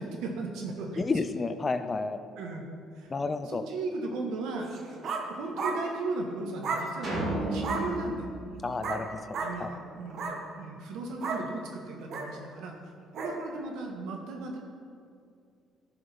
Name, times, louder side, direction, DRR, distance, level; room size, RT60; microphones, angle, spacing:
voice 1, 0.0-1.1 2.4-2.7 2.9-4.7 5.3-8.3 9.4-10.3 10.6-12.7 13.1-14.6, right 3 dB, 80° right, 1 dB, 1.6 m, -36 dB
voice 2, 1.0-2.2 3.1-3.6 8.6-9.7, left 3 dB, 20° left, 10 dB, 0.4 m, -31 dB
sound 1, 4.7-5.3 5.6-5.8 6.6-6.9 7.6-7.9 8.8-9.0 9.3-9.5 10.1-10.4 11.2-11.4 12.1-12.3 13.1-13.4, right 4 dB, 50° right, 1.2 m, -32 dB
sound 2, 7.0-9.5, right 1 dB, 30° right, 2.9 m, -33 dB
16.5 x 6.8 x 3.6 m, 2.3 s
cardioid pair, 160°, 0 cm